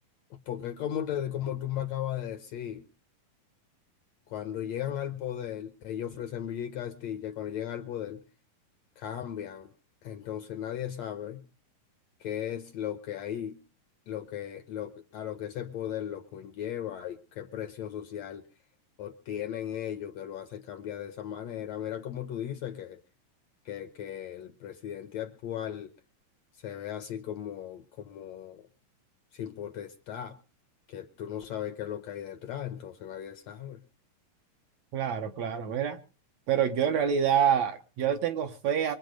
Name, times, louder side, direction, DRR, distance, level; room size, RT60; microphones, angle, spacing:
voice 1, 0.3-2.8 4.3-8.2 9.0-9.7 10.0-11.4 12.2-13.6 14.1-18.5 19.0-23.0 23.6-25.9 26.6-28.7 29.3-30.4 30.9-33.8, left 10 dB, 70° left, 1.7 m, -36 dB
voice 2, 34.9-36.0 36.5-39.0, right 8 dB, 65° right, 1.9 m, -27 dB
24.5 x 8.3 x 5.2 m
omnidirectional pair, 3.9 m